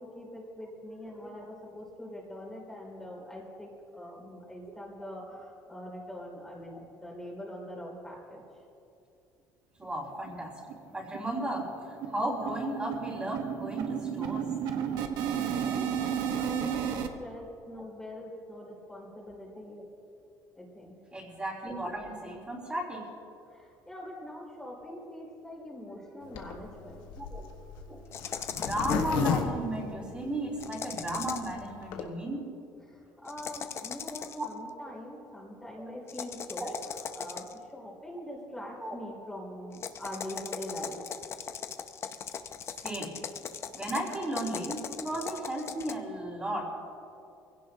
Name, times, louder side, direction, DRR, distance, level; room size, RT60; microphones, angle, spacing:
voice 1, 0.0-8.4 15.3-19.8 20.5-21.0 23.5-27.0 32.8-41.0, left 1 dB, 5° left, -4 dB, 2.9 m, -43 dB
voice 2, 9.8-10.5 10.9-11.7 12.1-14.5 21.1-23.1 27.2-27.4 27.9-28.0 28.5-32.5 34.8-35.0 35.8-36.0 36.6-36.7 37.2-37.3 38.8-38.9 42.8-43.1 43.7-46.8, right 1 dB, 15° right, -6 dB, 3.4 m, -34 dB
sound 1, 9.8-9.9 10.3-10.4 10.7-10.9 11.1-17.1, right 8 dB, 75° right, 1.2 m, -33 dB
Zipper (clothing), 26.3-30.6 31.1-31.2 31.4-31.5 31.7-32.0, left 7 dB, 75° left, 1.4 m, -33 dB
sound 2, 28.1-29.1 30.6-31.6 33.2-34.5 36.1-37.7 39.7-45.9, left 7 dB, 35° left, 0.7 m, -39 dB
24.0 x 16.5 x 2.9 m, 2.7 s
cardioid pair, 140°, 7 cm